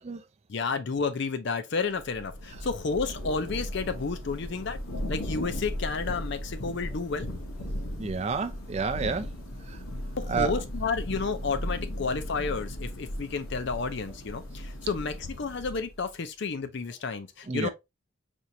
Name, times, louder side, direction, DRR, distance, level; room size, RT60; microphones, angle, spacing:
voice 1, 0.5-4.8 5.1-7.3 10.2-17.7, left 4 dB, 55° left, 0.5 m, -31 dB
Thunder / Rain, 2.0-16.1, equal, 75° left, 0.9 m, -36 dB
voice 2, 8.0-9.3 9.7-9.8 10.3-10.5 17.5-17.7, right 5 dB, 30° right, 0.4 m, -30 dB
4.4 x 2.5 x 2.7 m
head